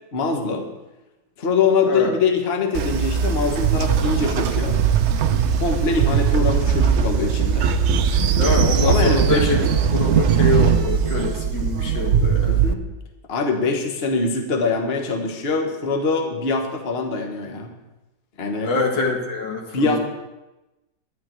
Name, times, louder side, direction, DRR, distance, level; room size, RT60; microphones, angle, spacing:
voice 1, 0.1-0.7 1.4-4.8 5.3-7.7 8.8-9.5 12.5-12.8 13.3-17.7 18.4-18.7 19.7-20.0, left 4 dB, 40° left, 2 dB, 1.3 m, -23 dB
Train, 2.7-12.7, right 7 dB, 75° right, 0.6 m, -19 dB
voice 2, 8.4-9.6 9.9-12.6 18.6-20.0, left 3 dB, 80° left, 0 dB, 2.5 m, -24 dB
12.0 x 10.5 x 4.5 m, 1.0 s
omnidirectional pair, 1.9 m